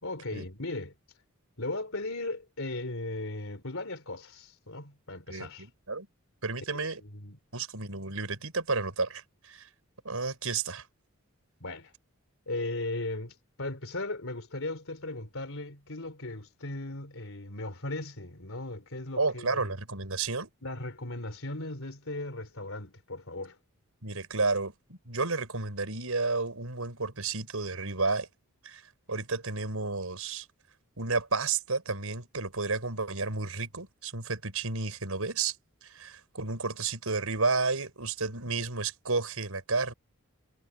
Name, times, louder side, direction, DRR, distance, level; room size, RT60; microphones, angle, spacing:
voice 1, 0.0-0.9 1.6-5.7 6.7-7.4 11.6-11.9 12.5-19.6 20.6-23.6, left 2 dB, 65° left, 4.0 m, -37 dB
voice 2, 5.3-6.1 6.4-7.0 7.5-9.7 10.0-10.8 19.2-20.5 24.0-28.3 28.6-28.8 29.1-30.4 31.0-35.6 35.8-39.9, right 3 dB, 80° right, 5.0 m, -31 dB
head